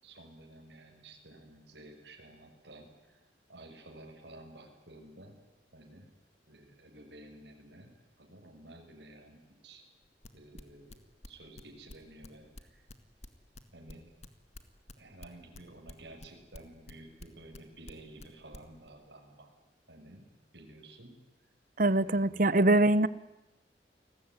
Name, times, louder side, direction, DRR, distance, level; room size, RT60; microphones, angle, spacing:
voice 1, 0.0-3.2 3.5-5.4 5.7-6.1 6.5-7.9 8.2-9.8 10.3-11.0 11.3-12.8 13.7-14.1 15.0-19.5 19.9-20.2 20.5-21.1 22.0-22.7, right 1 dB, 80° right, 1 dB, 6.6 m, -52 dB
sound 1, 10.0-13.6 13.9-17.6 17.9-18.3 18.5-18.9, left 1 dB, 40° left, 2.1 m, -48 dB
voice 2, 21.8-23.1, right 2 dB, 50° right, 17 dB, 1.0 m, -23 dB
29.0 x 20.0 x 9.7 m, 1.0 s
head